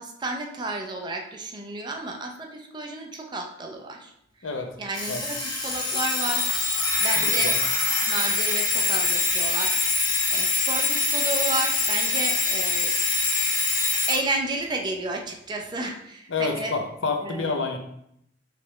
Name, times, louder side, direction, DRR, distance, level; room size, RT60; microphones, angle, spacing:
voice 1, 0.0-4.1 4.4-4.5 4.8-6.5 7.0-7.6 8.0-12.9 14.1-16.7 17.2-17.5, right 2 dB, 25° right, 2 dB, 0.5 m, -32 dB
Alarm, 4.9-14.2, left 3 dB, 25° left, 0.9 m, -24 dB
voice 2, 7.2-7.5 16.3-17.8, left 4 dB, 90° left, 4 dB, 0.7 m, -28 dB
5.0 x 3.2 x 3.1 m, 0.75 s
head